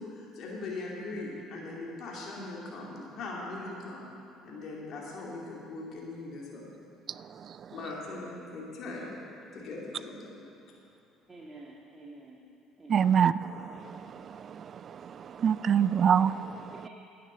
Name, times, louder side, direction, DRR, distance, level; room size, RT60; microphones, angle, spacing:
voice 1, 0.0-4.1 4.4-6.7 7.7-9.2 9.5-10.4, left 2 dB, 60° left, -4 dB, 2.6 m, -40 dB
voice 2, 11.3-12.4 12.8-13.1 16.8-16.9, right 2 dB, 25° right, -4 dB, 1.8 m, -49 dB
voice 3, 12.9-14.0 14.5-14.6 14.9-16.6, right 8 dB, 50° right, 16 dB, 0.3 m, -26 dB
11.5 x 9.3 x 6.8 m, 2.7 s
hypercardioid pair, 65°, 0 cm